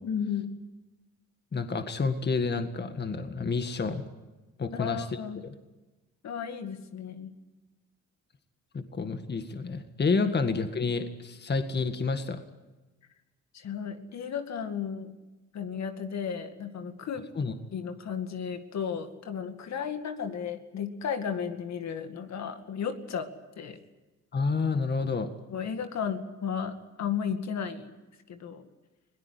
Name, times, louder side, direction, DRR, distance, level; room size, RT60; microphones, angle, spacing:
voice 1, 0.0-0.6 4.7-5.4 6.2-7.3 10.2-10.3 13.5-15.2 15.5-17.2 17.7-23.3 23.6-23.8 25.5-27.9 28.3-28.7, left 7 dB, 65° left, 7 dB, 2.2 m, -34 dB
voice 2, 1.5-4.0 4.6-5.1 8.7-12.4 17.4-17.5 24.3-25.3, left 4 dB, 35° left, 7 dB, 1.8 m, -29 dB
21.0 x 18.0 x 9.9 m, 1.1 s
cardioid pair, 90°, 30 cm